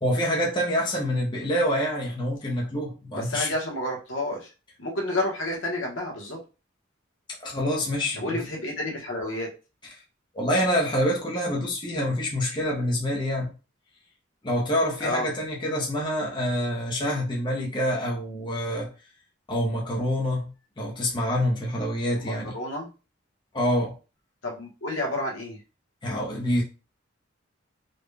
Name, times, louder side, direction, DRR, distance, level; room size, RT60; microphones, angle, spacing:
voice 1, 0.0-3.5 7.4-8.4 10.3-13.5 14.4-18.9 19.5-22.5 23.5-24.0 26.0-26.6, equal, 25° left, 0.8 m, -26 dB
voice 2, 3.1-4.5 4.8-6.4 8.2-9.5 15.0-15.3 22.2-22.9 24.4-25.6, left 1 dB, 75° left, 1.2 m, -30 dB
4.0 x 2.3 x 3.3 m
head